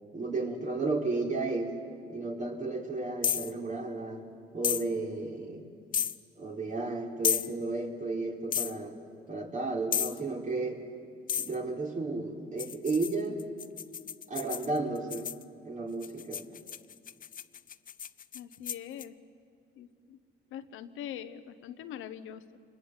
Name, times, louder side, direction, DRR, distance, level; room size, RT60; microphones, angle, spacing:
voice 1, 0.1-1.8 2.1-4.2 4.5-5.6 6.4-9.0 9.3-10.8 11.4-13.4 14.3-15.3 15.6-16.5, right 3 dB, 40° right, 1 dB, 3.6 m, -33 dB
sound 1, 3.2-3.5 4.6-4.8 5.9-6.2 7.2-7.5 8.5-8.7 9.9-10.2 11.3-11.5 12.6-15.4 16.0-19.0, left 8 dB, 45° left, 0.7 m, -32 dB
voice 2, 18.3-19.2 19.8-20.2 20.5-22.6, left 10 dB, 90° left, 10 dB, 1.0 m, -43 dB
26.5 x 21.0 x 8.0 m, 2.3 s
cardioid pair, 90°, 20 cm